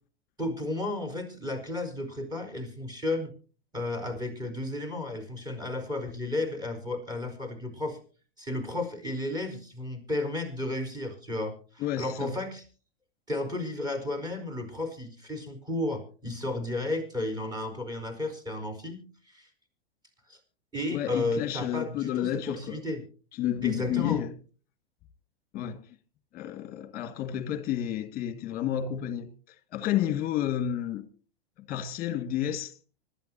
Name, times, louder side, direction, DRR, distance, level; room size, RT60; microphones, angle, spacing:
voice 1, 0.4-3.3 3.7-8.0 8.4-12.6 13.3-19.5 20.3-20.4 20.7-23.0 23.6-24.2, left 2 dB, 15° right, 4.6 m, -33 dB
voice 2, 11.8-12.3 20.9-22.8 23.4-24.3 25.5-26.0 26.3-29.3 29.7-31.1 31.6-32.7, left 11 dB, 30° left, 1.9 m, -30 dB
25.0 x 12.0 x 2.8 m
hypercardioid pair, 110°, 31 cm